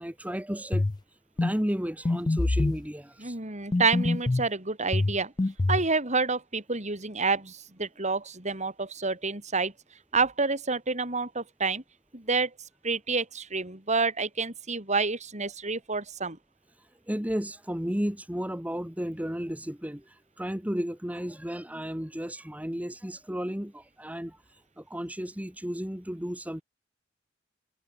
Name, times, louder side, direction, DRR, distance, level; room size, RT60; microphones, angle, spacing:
voice 1, 0.0-3.4 16.8-26.6, equal, 5° right, 1.7 m, -34 dB
sound 1, 0.7-1.0 1.4-1.6 2.1-2.8 3.7-4.5 4.9-5.9, left 2 dB, 20° left, 0.4 m, -25 dB
voice 2, 3.2-5.3 5.7-9.7 10.1-11.8 12.1-12.5 12.8-16.4, right 4 dB, 35° right, 5.4 m, -28 dB
head